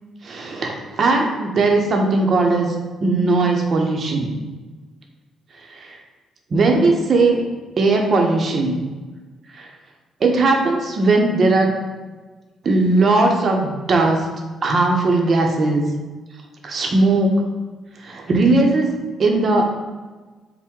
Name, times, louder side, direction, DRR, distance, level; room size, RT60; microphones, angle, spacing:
voice 1, 0.2-2.7 3.0-4.3 5.7-6.0 6.5-7.4 7.8-8.8 9.5-9.7 10.2-11.7 12.6-14.3 14.6-15.9 16.6-17.5 18.0-18.9 19.2-19.7, right 3 dB, 50° right, 2 dB, 0.7 m, -18 dB
4.4 x 2.1 x 3.6 m, 1.3 s
cardioid pair, 90°, 0 cm